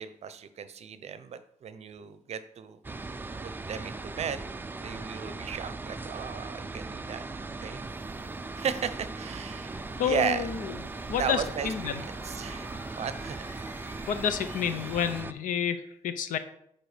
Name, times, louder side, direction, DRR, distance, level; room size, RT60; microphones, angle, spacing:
voice 1, 0.0-2.8 3.4-4.4 4.8-7.2 7.6-7.8 8.1-10.4 11.2-11.9 12.2-13.5, right 7 dB, 55° right, 12 dB, 0.6 m, -35 dB
sound 1, 2.8-15.3, right 3 dB, 15° right, 0.4 m, -39 dB
sound 2, 5.1-15.2, left 2 dB, 40° left, 2.4 m, -54 dB
voice 2, 10.0-10.7 11.1-12.0 14.1-16.4, left 8 dB, 80° left, 11 dB, 0.7 m, -29 dB
8.0 x 4.5 x 5.0 m, 0.72 s
cardioid pair, 120°, 13 cm